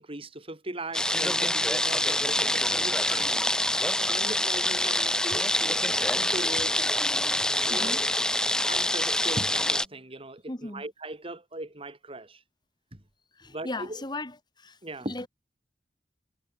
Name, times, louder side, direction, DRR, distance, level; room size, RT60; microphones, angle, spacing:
voice 1, 0.0-3.5 4.1-6.8 7.6-12.4 12.9-13.0 13.5-14.0 14.8-15.3, right 1 dB, 30° right, 3.1 m, -39 dB
sound 1, 0.9-9.8, left 1 dB, 5° left, 0.7 m, -26 dB
voice 2, 10.5-10.8 13.4-14.3 14.6-14.8 15.1-15.3, left 2 dB, 25° left, 2.3 m, -36 dB
head